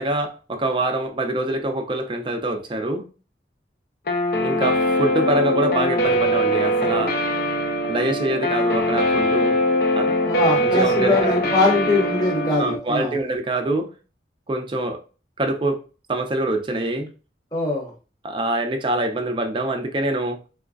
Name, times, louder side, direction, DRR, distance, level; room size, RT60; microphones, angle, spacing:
voice 1, 0.0-3.0 4.4-7.2 7.8-9.6 10.0-10.1 10.6-11.3 12.6-13.9 14.5-15.0 15.4-15.8 16.1-17.1 18.2-20.4, right 2 dB, 30° right, 0.4 m, -25 dB
Guitar, 4.1-12.8, equal, 55° left, 0.5 m, -22 dB
voice 2, 10.2-13.2 17.5-17.9, left 3 dB, 20° left, 0.7 m, -22 dB
4.0 x 2.3 x 2.4 m
head